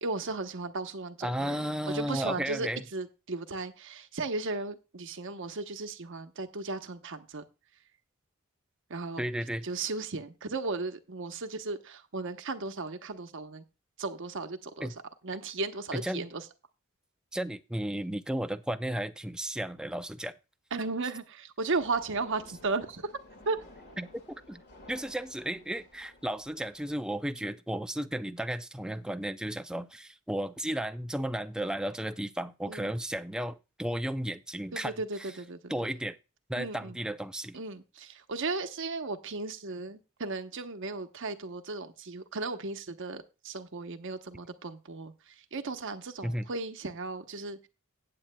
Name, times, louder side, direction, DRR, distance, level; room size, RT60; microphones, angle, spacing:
voice 1, 0.0-7.4 8.9-9.2 9.6-13.6 14.0-14.9 15.2-16.4 20.7-23.1 23.5-23.6 27.4-27.5 32.7-32.9 34.7-35.7 36.6-37.0 37.5-45.1 45.5-47.6, right 3 dB, 60° right, 0.9 m, -35 dB
voice 2, 1.2-2.8 9.2-9.7 14.8-14.9 15.9-16.3 17.3-20.3 24.0-24.6 24.9-35.3 35.7-36.2 36.5-37.6 46.2-46.5, right 1 dB, 5° right, 0.4 m, -34 dB
sound 1, 21.7-27.0, left 2 dB, 50° left, 2.1 m, -54 dB
15.0 x 8.7 x 2.2 m
head